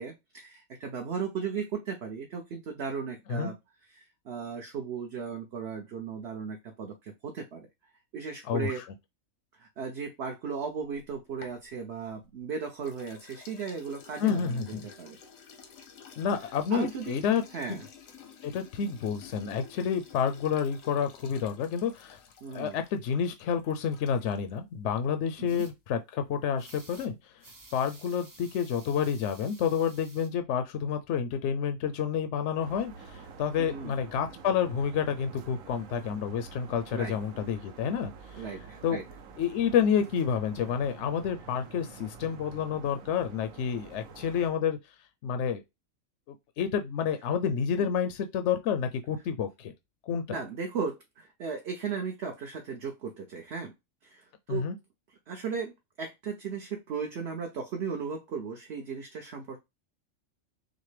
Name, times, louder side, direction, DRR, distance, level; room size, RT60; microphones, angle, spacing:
voice 1, 0.0-3.5 3.9-7.7 8.1-8.8 9.5-15.2 16.7-17.2 17.5-17.8 22.4-22.8 25.4-25.7 33.6-33.9 36.9-37.1 38.4-39.0 50.3-53.7 54.0-54.7 55.3-55.7 56.0-59.6, right 6 dB, 60° right, 1.0 m, -36 dB
voice 2, 8.5-8.9 14.2-14.9 16.2-17.4 17.7-17.8 18.4-22.2 22.5-27.2 27.7-38.4 38.8-39.0 39.4-44.8 45.2-45.6 46.6-49.7 50.1-50.4 54.5-54.7, left 7 dB, 70° left, 0.8 m, -29 dB
sound 1, 10.9-12.4 12.8-24.6, left 6 dB, 90° left, 1.3 m, -52 dB
sound 2, 25.5-25.7 26.6-27.1 27.4-30.3, right 2 dB, 25° right, 0.4 m, -53 dB
sound 3, 32.6-44.5, right 5 dB, 90° right, 1.1 m, -48 dB
6.3 x 2.2 x 3.2 m
omnidirectional pair, 1.4 m